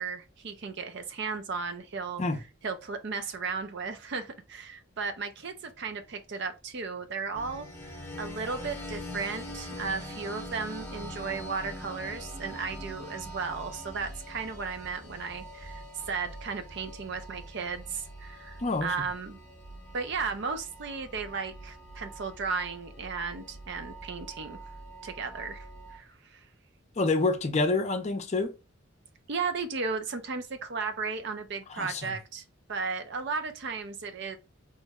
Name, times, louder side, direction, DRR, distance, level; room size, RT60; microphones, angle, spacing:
voice 1, 0.0-2.2 2.6-19.4 19.9-24.6 25.0-26.4 29.3-32.4 32.7-34.4, right 5 dB, 55° right, 0.5 m, -35 dB
sound 1, 7.3-26.0, equal, 10° left, 0.8 m, -43 dB
voice 2, 18.6-18.9 27.0-28.5 31.7-32.1, left 3 dB, 35° left, 0.5 m, -27 dB
3.1 x 2.1 x 3.5 m
head